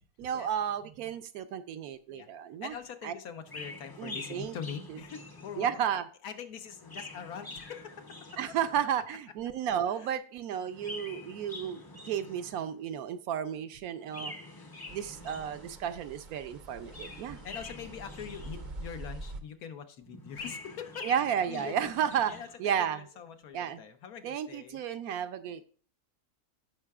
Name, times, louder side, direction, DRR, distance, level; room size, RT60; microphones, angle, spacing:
voice 1, 0.2-2.7 3.0-3.1 4.0-4.6 4.9-5.0 5.6-6.0 8.4-14.3 14.9-17.4 21.0-22.3 22.6-23.0 23.5-23.8 24.2-25.7, right 9 dB, 75° right, 10 dB, 1.1 m, -32 dB
voice 2, 2.6-5.7 6.2-8.6 9.9-10.1 14.1-14.4 16.8-17.0 17.4-21.1 21.5-21.9 22.3-24.8, left 7 dB, 80° left, 7 dB, 1.3 m, -43 dB
Chirp tweet, 3.4-5.9 6.6-9.0 10.6-12.8 14.0-15.9 16.7-19.0 20.0-22.6, left 2 dB, 25° left, 0.6 m, -46 dB
sound 1, 14.9-19.4, right 2 dB, 50° right, 0.6 m, -45 dB
15.5 x 5.6 x 2.4 m, 0.43 s
omnidirectional pair, 1.6 m